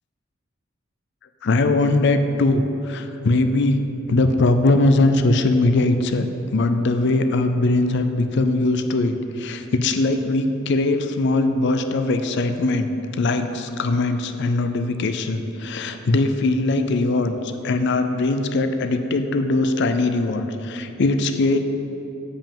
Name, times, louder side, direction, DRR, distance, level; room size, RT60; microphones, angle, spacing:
voice 1, 1.4-3.8 4.1-6.3 6.5-12.9 13.2-17.4 17.6-21.6, left 2 dB, 60° left, 8 dB, 0.5 m, -20 dB
7.4 x 5.2 x 7.2 m, 2.8 s
head